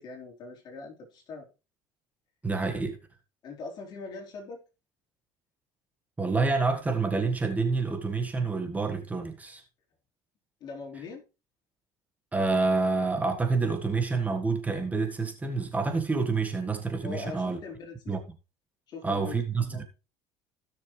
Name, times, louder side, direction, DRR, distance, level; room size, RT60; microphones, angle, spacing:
voice 1, 0.0-1.5 3.4-4.6 10.6-11.2 17.0-18.1 18.9-19.4 19.7-19.8, left 4 dB, 50° left, 4.5 m, -41 dB
voice 2, 2.4-3.0 6.2-9.6 12.3-17.6 18.1-18.2 19.0-19.8, right 4 dB, 15° right, 1.7 m, -28 dB
16.5 x 6.7 x 3.3 m
supercardioid pair, 105°, 9 cm